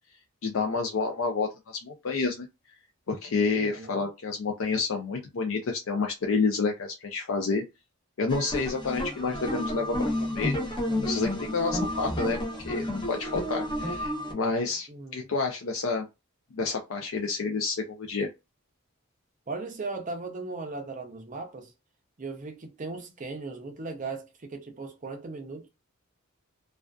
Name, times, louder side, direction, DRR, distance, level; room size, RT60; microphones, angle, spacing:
voice 1, 0.4-2.5 3.1-7.6 8.2-10.5 11.0-12.4 12.6-16.1 16.5-18.3, left 4 dB, 70° left, 0.4 m, -29 dB
voice 2, 3.6-4.1 14.9-15.3 19.5-21.7 22.2-25.7, right 3 dB, 35° right, 0.5 m, -37 dB
sound 1, 8.3-14.3, left 1 dB, 20° left, 0.7 m, -31 dB
2.4 x 2.3 x 2.2 m
head